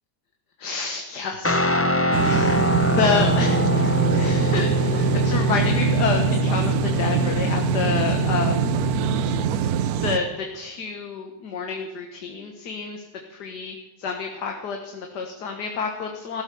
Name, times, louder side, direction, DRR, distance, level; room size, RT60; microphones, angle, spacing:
voice 1, 0.6-8.7 10.0-16.4, left 5 dB, 70° left, 4 dB, 2.0 m, -29 dB
Guitar, 1.4-9.6, left 1 dB, 10° left, 0.8 m, -24 dB
sound 1, 2.1-10.2, right 9 dB, 65° right, 1.1 m, -24 dB
15.5 x 12.5 x 6.8 m, 1.1 s
omnidirectional pair, 1.9 m